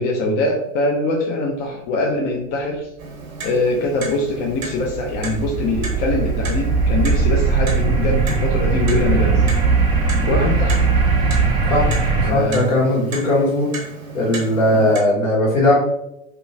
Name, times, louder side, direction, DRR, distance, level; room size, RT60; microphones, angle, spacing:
voice 1, 0.0-2.9 3.4-9.4 10.3-10.8 12.2-12.8 14.7-14.9, left 2 dB, 40° left, -1 dB, 0.6 m, -23 dB
Clock, 3.0-15.0, right 3 dB, 90° right, 0.8 m, -34 dB
sound 1, 3.9-12.3, right 4 dB, 10° right, 0.4 m, -19 dB
voice 2, 12.3-13.7 14.1-15.8, left 1 dB, 70° left, -4 dB, 1.4 m, -18 dB
2.8 x 2.2 x 2.5 m, 0.81 s
hypercardioid pair, 100°, 41 cm